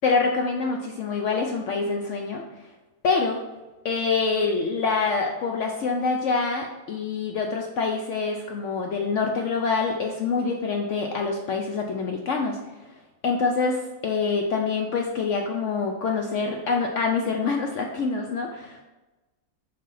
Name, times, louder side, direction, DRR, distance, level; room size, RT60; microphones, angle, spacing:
voice 1, 0.0-2.4 3.0-3.4 3.8-12.6 13.2-18.8, left 4 dB, 65° left, 2 dB, 0.8 m, -25 dB
5.4 x 3.4 x 5.5 m, 1.1 s
omnidirectional pair, 1.7 m